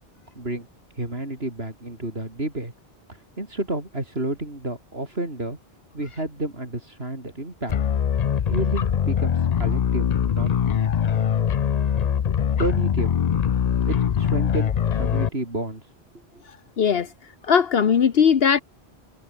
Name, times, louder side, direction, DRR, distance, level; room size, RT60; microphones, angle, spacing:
voice 1, 0.4-0.7 0.9-2.7 3.1-5.6 5.9-7.7 8.4-10.5 12.6-13.1 13.9-15.9 16.3-16.4, right 2 dB, 75° right, 5.8 m, -30 dB
sound 1, 7.7-15.3, left 8 dB, 50° left, 0.6 m, -22 dB
voice 2, 16.5-17.1 17.4-18.6, left 7 dB, 70° left, 1.2 m, -19 dB
omnidirectional pair, 1.0 m